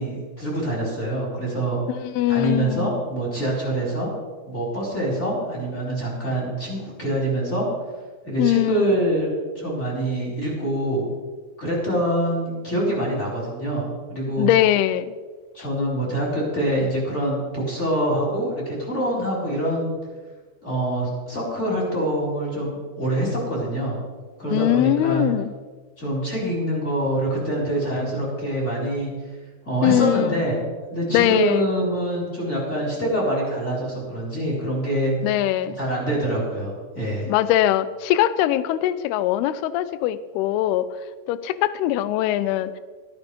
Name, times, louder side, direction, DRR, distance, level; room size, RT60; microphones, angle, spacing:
voice 1, 0.0-1.8 2.3-4.1 4.5-7.7 8.2-11.1 11.6-14.5 15.5-19.9 20.6-24.0 24.4-25.2 26.0-29.1 29.6-30.6 30.9-35.1 35.8-37.3, right 1 dB, 15° left, -4 dB, 3.9 m, -25 dB
voice 2, 1.9-2.9 8.4-9.0 14.4-15.1 24.5-25.5 29.8-30.4 31.1-31.7 35.2-35.8 37.3-40.9 41.3-42.8, left 13 dB, 80° left, 15 dB, 2.4 m, -21 dB
13.5 x 11.0 x 5.3 m, 1.4 s
omnidirectional pair, 5.0 m